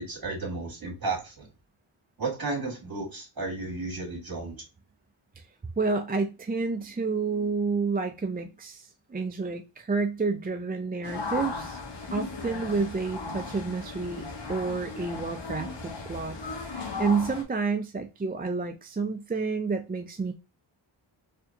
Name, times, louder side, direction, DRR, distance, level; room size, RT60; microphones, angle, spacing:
voice 1, 0.0-1.5 2.2-4.5, right 3 dB, 45° right, 2.0 m, -33 dB
voice 2, 5.8-11.8 12.1-14.2 14.5-20.3, right 4 dB, 20° right, 0.4 m, -30 dB
sound 1, 11.0-17.4, left 3 dB, 60° left, 1.2 m, -36 dB
4.3 x 2.7 x 2.7 m
wide cardioid pair, 80°, 48 cm